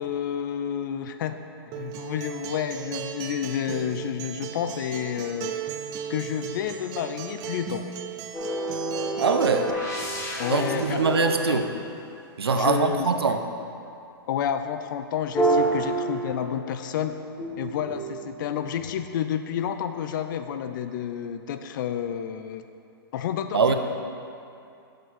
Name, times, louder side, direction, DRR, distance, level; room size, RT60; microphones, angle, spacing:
voice 1, 0.0-1.4 1.8-5.6 6.1-7.9 10.4-11.6 12.5-13.1 14.3-17.2 17.6-22.6 23.1-23.7, left 9 dB, 55° left, 9 dB, 0.4 m, -30 dB
Acoustic guitar, 1.7-9.7, right 8 dB, 30° right, 0.4 m, -36 dB
sound 1, 8.3-12.5 15.3-16.9 17.4-19.1, right 2 dB, 20° left, 1.3 m, -29 dB
voice 2, 9.2-9.8 10.5-11.7 12.4-13.4 23.5-23.7, right 5 dB, 90° right, 7 dB, 0.6 m, -23 dB
6.6 x 6.5 x 4.1 m, 2.6 s
hypercardioid pair, 125°, 13 cm